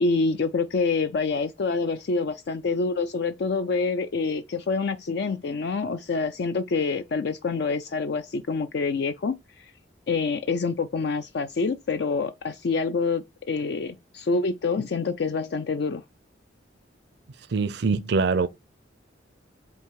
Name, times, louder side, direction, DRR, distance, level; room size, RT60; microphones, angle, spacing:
voice 1, 0.0-9.6 10.1-16.0, left 4 dB, 60° left, 0.4 m, -26 dB
voice 2, 17.5-18.5, right 4 dB, 60° right, 0.5 m, -23 dB
7.9 x 2.7 x 4.6 m
head